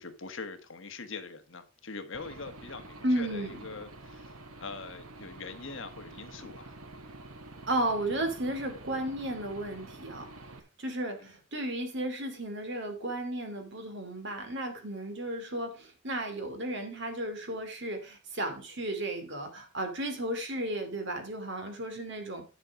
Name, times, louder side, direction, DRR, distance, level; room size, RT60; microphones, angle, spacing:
voice 1, 0.0-4.3 4.6-6.7, left 4 dB, 60° left, 8 dB, 1.4 m, -43 dB
Aircraft / Engine, 2.1-10.6, right 2 dB, 80° right, 1.4 m, -48 dB
voice 2, 3.0-3.6 7.7-10.3 10.8-22.4, right 1 dB, 55° right, 6 dB, 2.6 m, -34 dB
11.0 x 6.4 x 4.8 m, 0.31 s
head